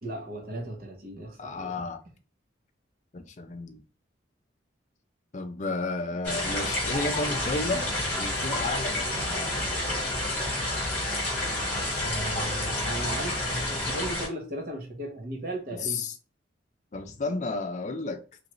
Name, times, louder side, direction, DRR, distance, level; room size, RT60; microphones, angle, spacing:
voice 1, 0.0-1.7 12.0-16.0, right 1 dB, 45° right, 0.9 m, -36 dB
voice 2, 1.4-2.0 3.1-3.8 5.3-7.9 8.2-9.6 15.8-16.1 16.9-18.2, left 3 dB, 40° left, 0.4 m, -32 dB
sound 1, 6.2-14.3, left 1 dB, 10° left, 1.3 m, -29 dB
3.1 x 2.5 x 3.0 m
head